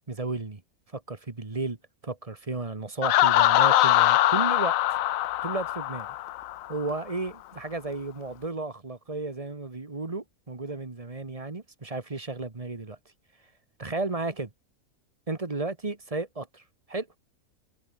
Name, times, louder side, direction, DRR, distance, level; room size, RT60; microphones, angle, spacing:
voice 1, 0.1-0.6 0.9-1.8 2.0-4.7 5.4-6.1 6.7-13.0 13.8-14.5 15.3-17.1, right 3 dB, 25° right, 1.4 m, -33 dB
Laughter, 3.0-6.7, left 14 dB, 70° left, 1.0 m, -22 dB
omnidirectional pair, 1.5 m